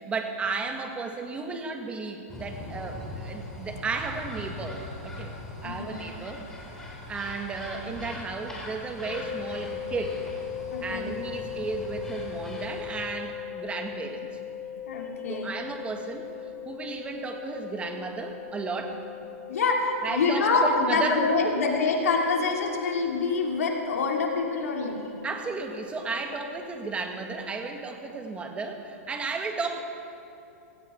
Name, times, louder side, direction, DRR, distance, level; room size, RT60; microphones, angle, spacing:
voice 1, 0.0-5.3 5.6-6.4 6.8-10.2 10.8-14.3 15.3-16.3 16.6-19.0 20.0-21.7 25.2-29.8, right 4 dB, 15° right, 4 dB, 1.6 m, -34 dB
sound 1, 2.3-13.3, left 1 dB, 5° left, 2.8 m, -41 dB
voice 2, 5.6-6.0 10.7-11.1 14.9-15.5 19.5-25.0, left 4 dB, 80° left, 0 dB, 2.8 m, -26 dB
sound 2, 9.0-27.5, left 9 dB, 35° left, 1.7 m, -40 dB
17.5 x 17.0 x 4.5 m, 2.7 s
hypercardioid pair, 135°, 8 cm